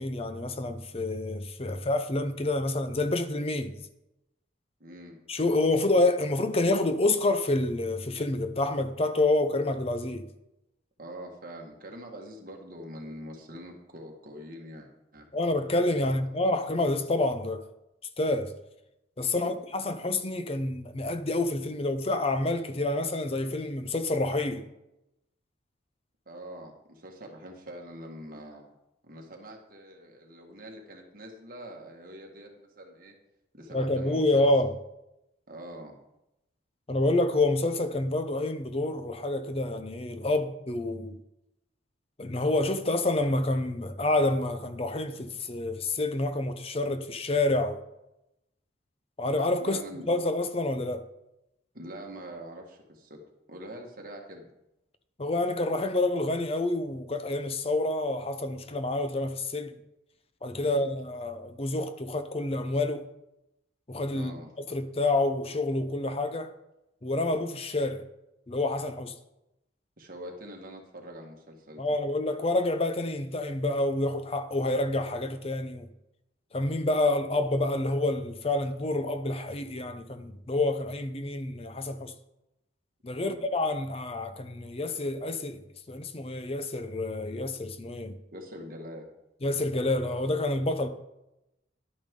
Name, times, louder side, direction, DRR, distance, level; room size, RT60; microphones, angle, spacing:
voice 1, 0.0-3.7 5.3-10.2 15.3-17.6 18.2-18.5 19.2-24.7 33.7-34.7 36.9-41.2 42.2-47.8 49.2-49.8 50.1-51.0 55.2-59.7 60.4-63.0 63.9-64.3 64.7-66.5 67.0-68.0 68.5-69.1 71.8-75.9 76.5-82.1 83.0-85.6 85.9-88.2 89.4-90.9, left 2 dB, 30° left, 0.6 m, -28 dB
voice 2, 4.8-5.2 11.0-15.3 16.1-16.2 19.3-19.6 26.2-28.7 29.0-33.1 33.5-34.5 35.5-36.0 49.6-50.1 51.7-53.2 53.5-54.5 60.6-60.9 64.1-64.5 70.0-72.0 83.2-83.5 88.3-89.1, equal, 45° right, 1.7 m, -44 dB
11.0 x 9.1 x 3.7 m
head